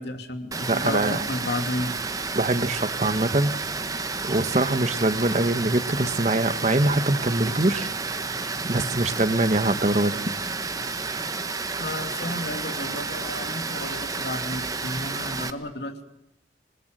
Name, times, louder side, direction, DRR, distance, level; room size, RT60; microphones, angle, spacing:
voice 1, 0.0-1.9 11.8-16.0, left 1 dB, 70° left, 6 dB, 2.7 m, -32 dB
Water, 0.5-15.5, right 4 dB, 20° right, 1.1 m, -31 dB
voice 2, 0.7-1.2 2.3-3.5 4.2-7.9 8.6-10.2, right 2 dB, 40° right, 11 dB, 1.2 m, -23 dB
27.5 x 21.0 x 7.7 m, 0.81 s
head